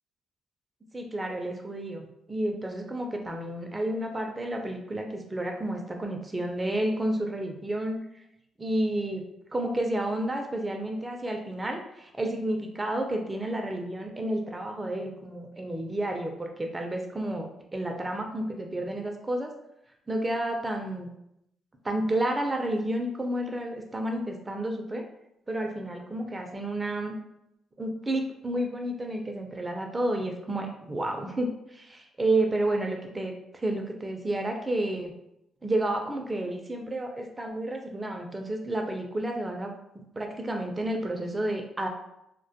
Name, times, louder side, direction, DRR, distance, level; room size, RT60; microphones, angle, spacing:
voice 1, 0.9-8.0 8.6-9.2 9.5-19.5 20.1-21.1 21.8-25.0 25.5-27.2 27.8-35.1 35.6-39.7 40.2-41.9, right 1 dB, 20° right, 2 dB, 0.4 m, -31 dB
2.1 x 2.1 x 2.7 m, 0.81 s
cardioid pair, 90°, 0 cm